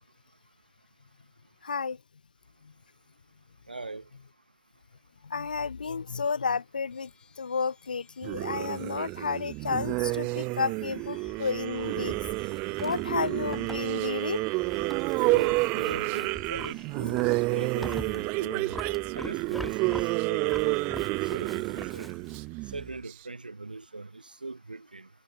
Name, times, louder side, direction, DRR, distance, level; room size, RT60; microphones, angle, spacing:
voice 1, 1.6-2.0 5.2-7.1 7.4-12.2 12.8-14.4, left 5 dB, 75° left, 0.8 m, -31 dB
voice 2, 3.7-4.0 15.3-17.2 17.5-18.7 19.2-20.0 20.3-20.8 21.3-22.1 22.7-25.1, right 3 dB, 80° right, 1.9 m, -40 dB
sound 1, 6.9-18.4, left 7 dB, 15° left, 7.3 m, -62 dB
sound 2, 8.2-23.1, right 26 dB, 35° right, 0.8 m, -29 dB
Livestock farm animals working animals, 10.8-22.5, equal, ahead, 0.5 m, -45 dB
figure-of-eight pair, 105°, 5 cm